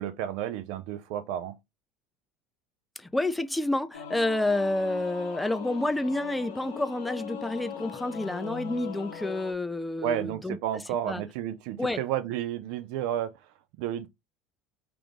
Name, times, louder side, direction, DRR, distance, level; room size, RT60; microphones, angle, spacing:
voice 1, 0.0-1.6 10.0-13.3 13.8-14.1, right 11 dB, 65° right, 0.4 m, -31 dB
voice 2, 3.0-10.6 11.0-11.2 11.8-12.0, left 2 dB, 10° left, 0.4 m, -29 dB
Singing / Musical instrument, 3.9-9.5, left 7 dB, 80° left, 0.7 m, -39 dB
3.0 x 2.5 x 3.4 m
hypercardioid pair, 75°, 0 cm